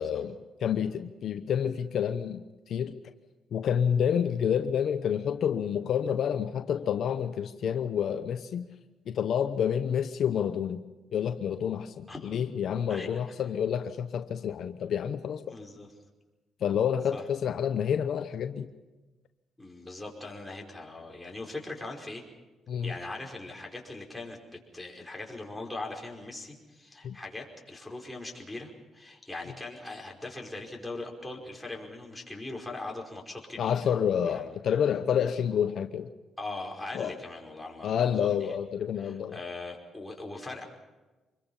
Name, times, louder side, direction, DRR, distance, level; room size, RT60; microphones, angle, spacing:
voice 1, 0.0-3.0 3.5-8.7 9.1-10.8 11.1-15.5 16.6-18.7 22.7-22.9 27.0-27.2 33.6-36.1 36.9-37.1 37.8-39.4, left 8 dB, 65° left, 9 dB, 0.9 m, -29 dB
voice 2, 12.1-12.4 12.9-13.4 15.5-15.9 17.1-17.2 19.6-22.2 22.8-33.8 34.2-34.5 36.4-38.6 39.0-40.6, left 2 dB, 10° left, -1 dB, 5.1 m, -40 dB
26.0 x 22.0 x 5.7 m, 1.2 s
cardioid pair, 90°, 0 cm